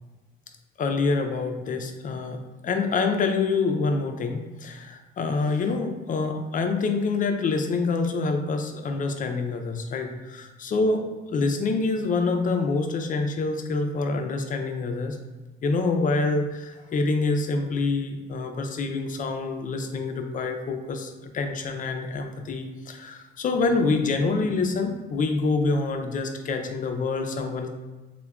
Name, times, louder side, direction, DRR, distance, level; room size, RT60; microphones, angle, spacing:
voice 1, 0.8-15.2 15.6-27.7, left 3 dB, 45° left, 5 dB, 0.4 m, -26 dB
3.3 x 2.1 x 2.3 m, 1.2 s
cardioid pair, 90°, 20 cm